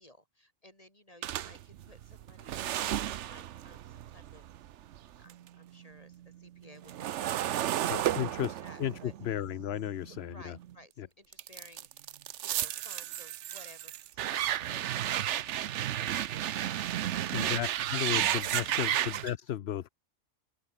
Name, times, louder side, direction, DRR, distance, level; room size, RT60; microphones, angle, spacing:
voice 1, 0.0-4.5 5.2-9.1 10.1-12.1 12.4-15.6 15.9-19.0, left 1 dB, 30° left, 6.8 m, -56 dB
sound 1, 1.2-5.5 5.8-10.8 11.3-19.3, right 12 dB, 70° right, 0.9 m, -33 dB
voice 2, 7.9-10.6 11.0-11.1 17.3-19.9, left 11 dB, 60° left, 0.9 m, -34 dB
open air
omnidirectional pair, 1.3 m